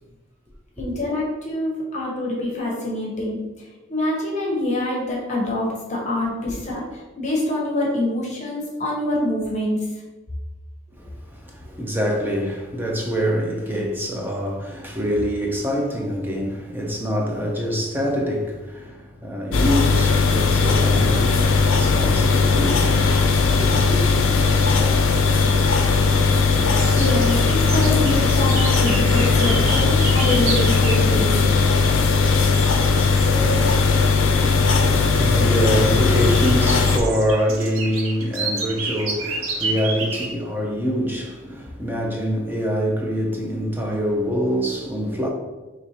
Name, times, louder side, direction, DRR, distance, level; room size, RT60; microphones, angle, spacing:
voice 1, 0.8-10.0 26.9-31.6, left 1 dB, 35° left, 0.9 m, -25 dB
voice 2, 11.0-23.3 23.6-24.0 34.2-34.3 34.6-45.3, equal, 10° right, 0.6 m, -25 dB
sound 1, 19.5-37.0, left 4 dB, 65° left, 0.5 m, -18 dB
sound 2, 26.7-33.7 34.0-40.3, right 3 dB, 75° right, 0.8 m, -31 dB
5.2 x 3.1 x 2.9 m
head